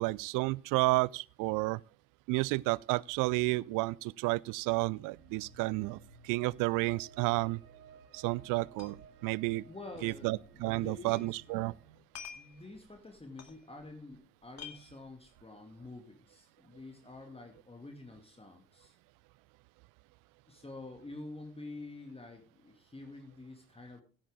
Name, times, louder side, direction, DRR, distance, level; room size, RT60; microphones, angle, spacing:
voice 1, 0.0-1.8 2.3-6.0 6.2-7.6 8.1-9.6 10.0-11.7, right 23 dB, 50° right, 0.5 m, -31 dB
sound 1, 5.1-12.0, right 5 dB, 70° right, 1.6 m, -57 dB
sound 2, 8.2-8.3 8.5-9.1 9.4-9.5 10.0-11.3 11.6-14.1 14.4-15.5, left 7 dB, 40° left, 2.1 m, -50 dB
voice 2, 9.6-11.4 12.3-19.0 20.5-24.0, left 2 dB, 15° left, 2.3 m, -48 dB
16.0 x 8.7 x 3.7 m
figure-of-eight pair, 55°, 42 cm